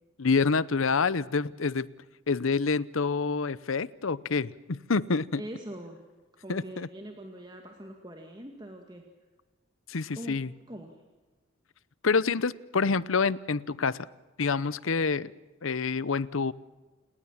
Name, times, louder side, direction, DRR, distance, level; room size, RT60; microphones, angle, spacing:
voice 1, 0.2-1.9 2.3-5.4 6.5-6.9 9.9-10.5 12.0-14.1 14.4-15.3 15.6-16.5, left 4 dB, 85° left, 19 dB, 0.8 m, -27 dB
voice 2, 5.4-6.0 6.4-9.0 10.1-10.4 10.7-11.0, equal, 20° right, 3 dB, 2.0 m, -42 dB
29.5 x 19.0 x 7.4 m, 1.2 s
head